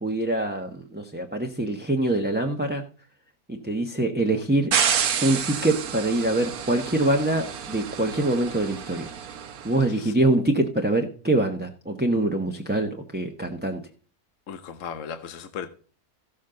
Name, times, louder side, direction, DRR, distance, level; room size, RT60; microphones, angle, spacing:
voice 1, 0.0-2.8 3.5-4.7 5.2-9.1 9.6-13.8, right 2 dB, 10° right, 1.0 m, -24 dB
sound 1, 4.7-9.8, right 8 dB, 75° right, 1.5 m, -29 dB
voice 2, 14.5-15.7, left 7 dB, 60° left, 1.2 m, -36 dB
15.0 x 7.3 x 3.8 m
omnidirectional pair, 1.6 m